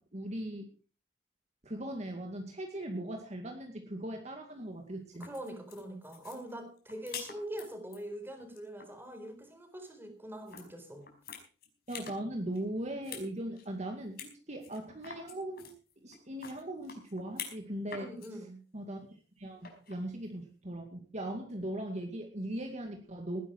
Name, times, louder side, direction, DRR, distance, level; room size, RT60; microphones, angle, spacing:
voice 1, 0.1-0.7 1.6-5.3 11.9-18.1 18.7-19.0 19.4-23.4, right 1 dB, 40° right, 3 dB, 2.2 m, -39 dB
sound 1, 5.0-8.0 8.4-8.9 10.5-10.7 11.0-12.2 12.5-13.3 13.6-13.7 14.2-14.3 14.6-17.6 17.9-18.3 19.6-20.0, left 7 dB, 60° left, 4.9 m, -46 dB
voice 2, 5.2-11.1 18.0-18.6, right 1 dB, 15° right, 6 dB, 4.1 m, -43 dB
18.5 x 11.0 x 4.6 m, 0.39 s
head